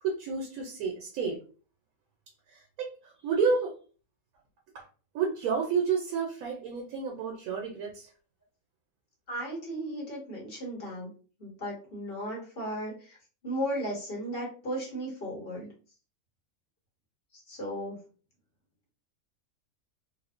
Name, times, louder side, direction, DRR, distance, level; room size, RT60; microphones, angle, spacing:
voice 1, 0.0-1.4 2.5-3.7 4.7-4.8 5.1-8.1, right 5 dB, 90° right, 0 dB, 1.0 m, -30 dB
voice 2, 9.3-11.1 11.4-13.2 13.4-15.7 17.5-18.0, equal, 45° left, -3 dB, 1.1 m, -35 dB
2.7 x 2.1 x 2.4 m, 0.38 s
omnidirectional pair, 1.4 m